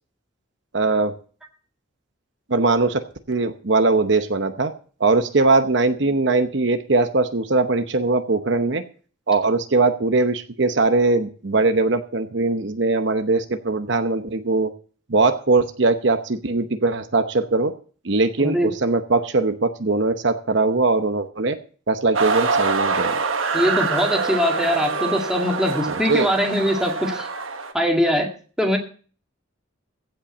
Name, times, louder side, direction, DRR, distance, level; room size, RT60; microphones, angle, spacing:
voice 1, 0.7-1.1 2.5-4.7 5.0-8.8 9.3-14.7 15.1-17.7 18.0-21.6 21.9-23.2 26.1-26.3, right 3 dB, 60° right, 8 dB, 0.9 m, -20 dB
voice 2, 18.4-18.7 23.5-27.3 27.7-28.3 28.6-28.8, equal, 5° right, 1 dB, 2.0 m, -22 dB
sound 1, 22.1-27.7, right 4 dB, 90° right, 1.4 m, -25 dB
15.5 x 5.5 x 7.2 m, 0.42 s
head